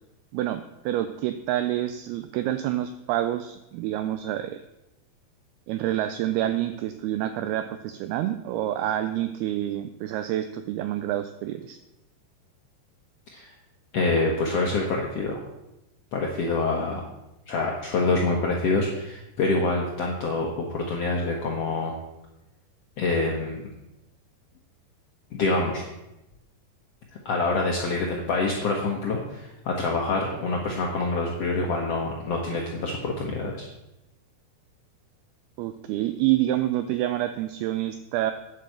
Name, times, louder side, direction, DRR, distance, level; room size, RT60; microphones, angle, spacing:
voice 1, 0.3-4.6 5.7-11.8 35.6-38.3, right 13 dB, 80° right, 10 dB, 2.4 m, -27 dB
voice 2, 13.9-15.4 16.1-17.0 17.5-22.0 23.0-23.6 25.3-25.8 27.2-33.7, left 3 dB, 75° left, -1 dB, 1.4 m, -26 dB
9.3 x 7.4 x 7.7 m, 0.93 s
omnidirectional pair, 4.8 m